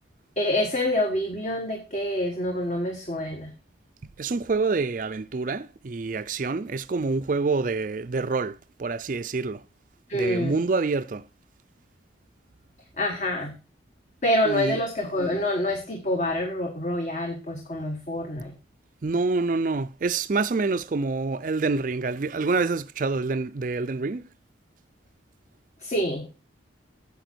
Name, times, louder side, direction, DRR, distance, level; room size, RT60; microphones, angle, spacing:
voice 1, 0.4-3.5 10.1-10.6 13.0-13.5 14.2-18.5 25.8-26.4, left 1 dB, 40° left, 1.4 m, -27 dB
voice 2, 4.2-9.6 10.1-11.3 14.4-14.8 19.0-24.3, right 3 dB, 45° right, 0.4 m, -27 dB
9.2 x 7.1 x 4.4 m
head